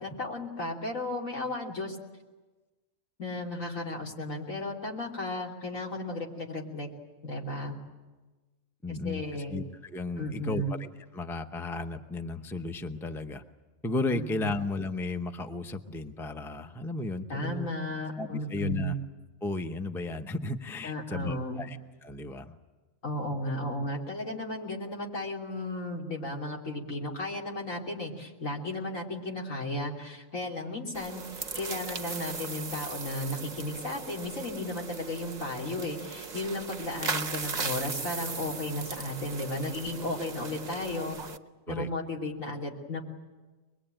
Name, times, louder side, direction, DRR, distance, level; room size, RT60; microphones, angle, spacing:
voice 1, 0.0-2.0 3.2-6.9 7.2-7.8 8.9-9.6 10.2-10.7 14.1-14.5 17.3-19.0 20.8-21.6 23.0-41.2 41.7-43.0, left 1 dB, 80° left, -2 dB, 3.6 m, -34 dB
voice 2, 8.8-10.9 11.1-13.4 13.8-17.7 18.2-18.9 19.4-22.6 41.7-41.9, left 2 dB, ahead, 7 dB, 0.7 m, -34 dB
sound 1, 30.9-41.4, right 5 dB, 35° right, 0.9 m, -38 dB
24.0 x 21.5 x 9.0 m, 1.2 s
omnidirectional pair, 1.4 m